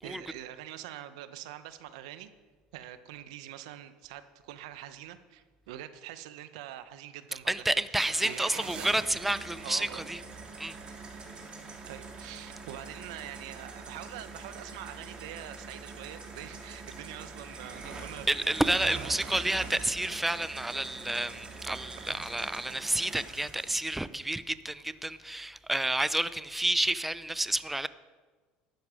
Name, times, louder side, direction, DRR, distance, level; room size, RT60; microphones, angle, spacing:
voice 1, 0.0-2.3 2.7-7.5 7.9-9.0 9.6-10.0 11.9-19.4 21.7-22.3, right 12 dB, 85° right, 0.8 m, -45 dB
voice 2, 7.5-10.2 10.6-10.8 18.3-27.9, right 1 dB, 5° right, 0.4 m, -30 dB
sound 1, 8.0-23.9, right 3 dB, 30° right, 2.9 m, -44 dB
12.0 x 10.5 x 4.9 m
supercardioid pair, 100°, 3 cm